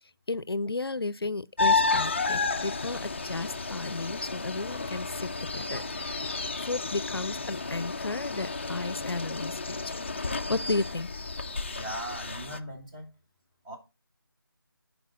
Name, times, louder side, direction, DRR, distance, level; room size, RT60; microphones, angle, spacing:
voice 1, 0.3-6.3 6.6-10.0 10.5-11.1, left 3 dB, 85° left, 0.5 m, -33 dB
sound 1, 1.6-12.6, left 3 dB, 30° left, 0.4 m, -31 dB
voice 2, 11.7-13.1 13.6-13.8, right 1 dB, 15° right, 1.6 m, -39 dB
11.5 x 4.7 x 4.0 m
figure-of-eight pair, 165°, 12 cm